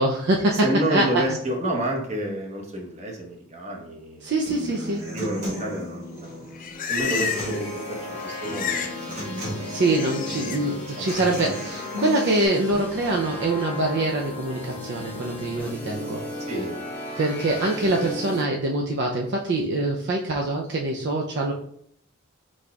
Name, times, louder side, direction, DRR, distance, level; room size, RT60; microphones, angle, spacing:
voice 1, 0.0-1.4 4.2-5.0 9.7-16.5 17.2-21.5, right 2 dB, 55° right, 0 dB, 0.4 m, -24 dB
voice 2, 0.5-4.3 4.7-6.3 6.9-9.2 9.5-9.8 10.3-11.1 16.5-16.8, right 1 dB, 35° right, 1 dB, 0.9 m, -30 dB
Human voice / Acoustic guitar, 4.5-12.5, left 1 dB, 70° right, 1.6 m, -36 dB
Livestock farm animals working animals, 6.3-7.7 7.9-9.0 9.3-10.6 11.0-11.4, left 6 dB, 40° left, 0.4 m, -32 dB
sound 1, 7.0-18.4, left 2 dB, 10° left, 0.8 m, -36 dB
4.7 x 4.2 x 2.3 m, 0.68 s
head